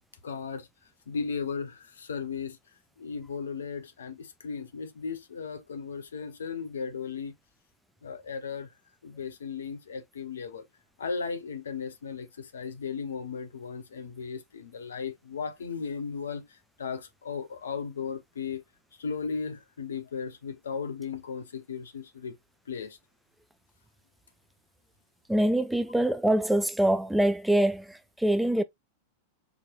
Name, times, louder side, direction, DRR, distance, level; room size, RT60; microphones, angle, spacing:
voice 1, 0.2-0.7 1.1-2.6 3.0-7.3 8.0-8.7 9.0-10.7 11.0-16.5 16.8-18.6 19.0-22.4 22.7-23.0, left 5 dB, 65° left, 0.8 m, -36 dB
voice 2, 25.3-28.6, right 1 dB, 5° right, 0.4 m, -24 dB
4.8 x 3.0 x 2.3 m
figure-of-eight pair, 90°, 0 cm